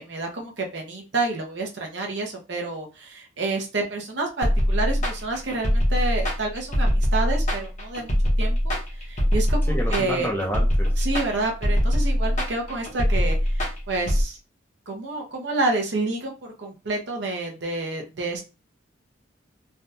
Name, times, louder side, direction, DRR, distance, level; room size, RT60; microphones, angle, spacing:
voice 1, 0.0-10.3 11.0-14.4 14.9-16.3 16.6-18.4, right 2 dB, 60° right, 1 dB, 0.8 m, -29 dB
sound 1, 4.4-14.2, equal, 40° left, 0.9 m, -22 dB
voice 2, 9.7-10.9, equal, 10° left, -1 dB, 0.6 m, -28 dB
3.4 x 2.3 x 2.7 m, 0.30 s
head